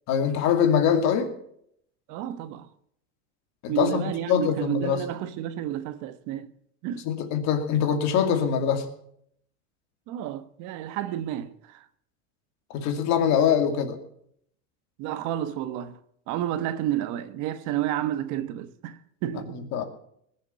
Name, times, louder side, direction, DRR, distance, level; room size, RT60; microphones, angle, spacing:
voice 1, 0.1-1.3 3.6-5.0 7.0-8.8 12.7-14.0 19.7-19.8, left 8 dB, 50° left, 2.5 m, -23 dB
voice 2, 2.1-2.7 3.7-6.5 6.8-7.0 10.1-11.8 15.0-16.0 16.3-19.6, right 12 dB, 55° right, 1.2 m, -31 dB
19.5 x 7.2 x 8.3 m
supercardioid pair, 135°, 36 cm